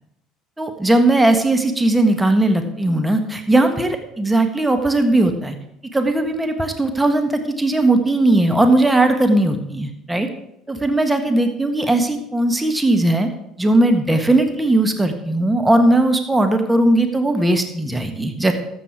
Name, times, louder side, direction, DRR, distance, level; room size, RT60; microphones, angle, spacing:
voice 1, 0.6-5.6 5.9-10.3 10.7-13.3 13.6-18.5, right 1 dB, 10° right, 6 dB, 1.5 m, -18 dB
13.5 x 7.8 x 4.8 m, 0.79 s
hypercardioid pair, 65°, 0 cm